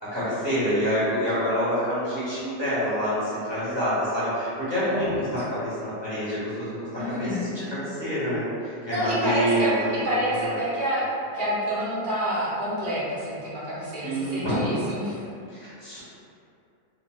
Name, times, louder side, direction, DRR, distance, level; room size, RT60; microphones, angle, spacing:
voice 1, 0.0-7.3 7.5-10.6 14.0-14.9 15.5-16.0, equal, 20° left, -13 dB, 1.1 m, -27 dB
voice 2, 4.9-5.2 6.9-7.5 8.9-11.0 11.3-15.2, equal, 40° right, -10 dB, 0.8 m, -28 dB
2.7 x 2.1 x 3.2 m, 2.6 s
omnidirectional pair, 1.7 m